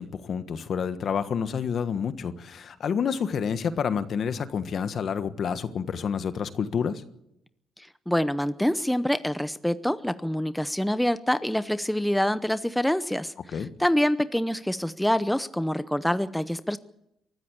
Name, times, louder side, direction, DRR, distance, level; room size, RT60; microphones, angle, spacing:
voice 1, 0.0-7.0 13.5-13.7, left 7 dB, 55° left, 11 dB, 1.4 m, -29 dB
voice 2, 7.8-13.3 13.8-16.8, equal, 5° left, 13 dB, 0.7 m, -26 dB
23.5 x 14.0 x 8.3 m, 0.81 s
cardioid pair, 90°, 0 cm